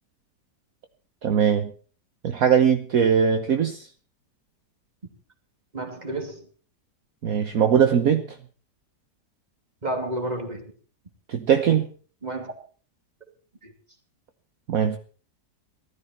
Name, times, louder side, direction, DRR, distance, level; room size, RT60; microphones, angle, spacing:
voice 1, 1.2-1.7 2.2-3.9 7.2-8.2 11.3-11.9 14.7-15.0, right 7 dB, 60° right, 1.5 m, -20 dB
voice 2, 5.7-6.5 9.8-10.7 12.2-12.5 13.6-13.7, right 1 dB, 25° right, 2.9 m, -31 dB
19.0 x 13.5 x 4.4 m
omnidirectional pair, 1.8 m